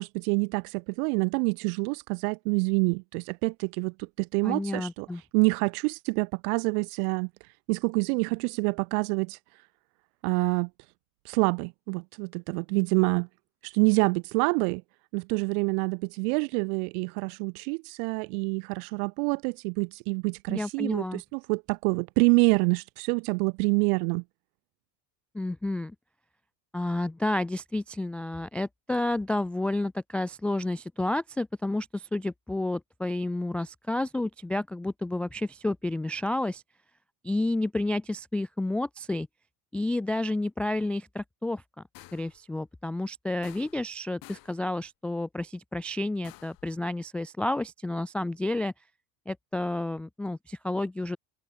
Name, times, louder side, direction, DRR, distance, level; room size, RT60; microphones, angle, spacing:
voice 1, 0.0-5.1 5.3-7.3 7.7-9.4 10.2-10.7 11.3-13.3 13.6-14.8 15.1-24.2, right 36 dB, 70° right, 1.7 m, -27 dB
voice 2, 4.4-5.2 20.5-21.2 25.3-25.9 26.7-36.6 37.2-39.3 39.7-41.6 42.1-48.7 49.3-51.2, left 2 dB, 5° left, 0.3 m, -30 dB
sound 1, 41.9-42.4 43.4-43.9 44.2-44.6 46.2-46.7, left 19 dB, 45° left, 7.7 m, -51 dB
cardioid pair, 175°, 47 cm